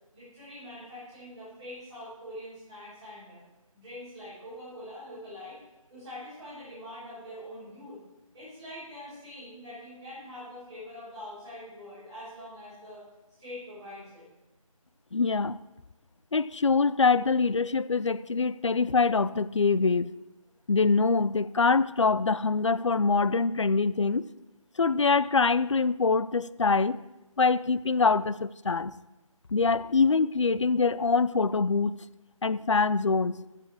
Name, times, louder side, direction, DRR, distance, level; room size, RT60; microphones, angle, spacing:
voice 1, 0.1-3.4 3.7-5.6 5.9-8.0 8.3-13.0 13.4-14.2, left 1 dB, 10° right, 4.6 m, -44 dB
voice 2, 15.1-15.6 16.3-20.2 20.7-24.3 24.8-27.0 27.4-29.0 29.5-32.0 32.4-33.4, left 4 dB, 55° left, 0.4 m, -24 dB
13.0 x 7.5 x 4.8 m
figure-of-eight pair, 175°, 18 cm